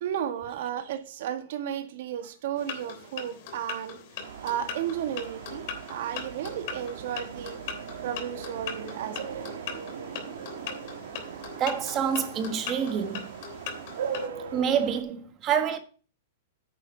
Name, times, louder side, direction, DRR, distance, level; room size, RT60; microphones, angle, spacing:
voice 1, 0.0-4.0 4.4-7.6 8.0-9.4, right 10 dB, 60° right, 1.7 m, -33 dB
sound 1, 2.6-14.3, left 7 dB, 45° left, 3.2 m, -40 dB
sound 2, 4.2-15.0, right 7 dB, 75° right, 2.0 m, -39 dB
voice 2, 11.6-13.3 14.5-15.8, right 8 dB, 25° right, 1.4 m, -27 dB
9.6 x 8.9 x 4.5 m
supercardioid pair, 165°, 0 cm